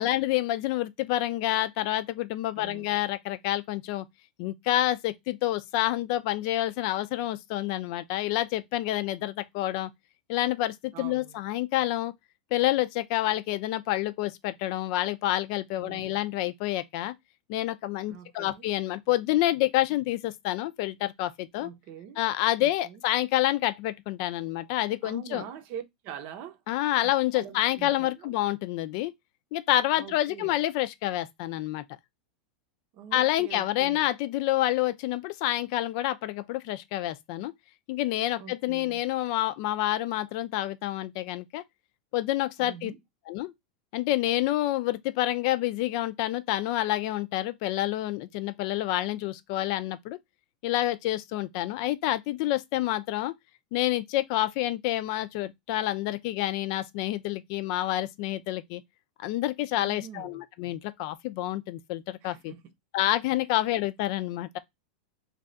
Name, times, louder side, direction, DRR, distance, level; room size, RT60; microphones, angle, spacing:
voice 1, 0.0-4.1 4.4-9.9 10.3-12.1 12.5-17.1 17.5-21.7 22.2-25.4 26.7-29.1 29.5-31.8 33.1-37.5 37.9-41.6 42.1-42.9 43.3-43.5 43.9-50.2 50.6-53.3 53.7-58.8 59.2-62.5 62.9-64.6, left 15 dB, 55° left, 0.5 m, -28 dB
voice 2, 2.6-3.1 10.9-11.4 15.8-16.2 18.1-18.7 21.6-22.2 22.6-23.0 25.0-26.6 27.3-28.3 30.0-30.6 32.9-34.1 38.4-39.0 42.6-43.0 59.8-60.4 62.2-62.7, right 8 dB, 50° right, 0.7 m, -44 dB
3.2 x 2.4 x 3.7 m
hypercardioid pair, 120°, 4 cm